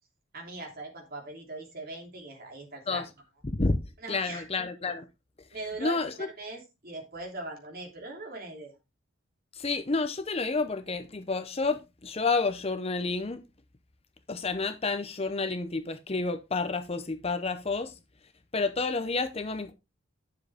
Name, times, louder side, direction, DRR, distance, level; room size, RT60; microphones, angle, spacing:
voice 1, 0.3-3.0 4.0-4.4 5.5-8.7, right 2 dB, 45° right, 3.0 m, -40 dB
voice 2, 3.4-3.8 4.1-5.1 5.8-6.3 9.5-13.4 14.3-18.0 18.5-19.7, left 3 dB, 30° left, 0.7 m, -30 dB
10.5 x 7.0 x 3.5 m
head